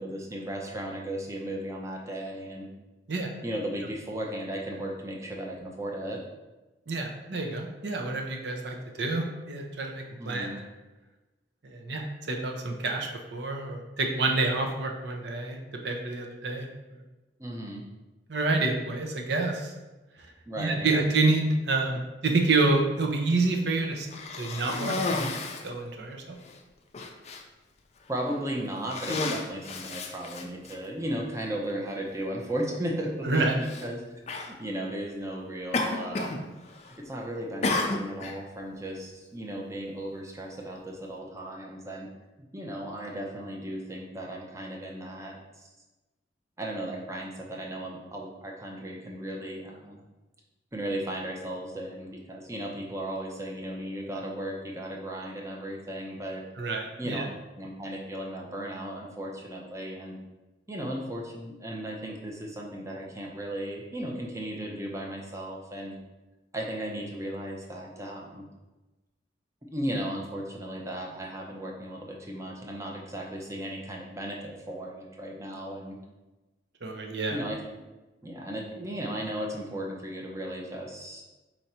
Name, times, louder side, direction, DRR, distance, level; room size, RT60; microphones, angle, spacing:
voice 1, 0.0-2.7 3.4-6.2 10.2-10.6 17.4-17.8 20.5-21.0 28.1-34.0 34.6-36.3 37.0-42.1 42.5-45.7 46.6-50.0 50.7-56.4 57.0-57.3 57.6-60.2 60.7-65.9 66.5-68.4 69.7-76.0 77.3-77.6 78.2-81.3, right 1 dB, 15° right, -1 dB, 0.6 m, -35 dB
voice 2, 6.9-10.6 11.6-15.6 15.8-16.7 16.9-17.0 18.3-19.7 20.2-20.3 20.6-24.1 24.4-26.4 33.2-33.6 56.6-57.3 76.8-77.4, right 3 dB, 65° right, 2 dB, 0.6 m, -28 dB
Cough, 24.1-25.7 26.4-26.6 26.9-27.4 28.2-28.4 28.8-30.8 31.7-31.8 33.6-33.9 34.3-34.5 35.7-36.4 36.7-37.1 37.6-38.4, left 3 dB, 40° left, 0.4 m, -31 dB
4.4 x 2.6 x 4.2 m, 1.1 s
head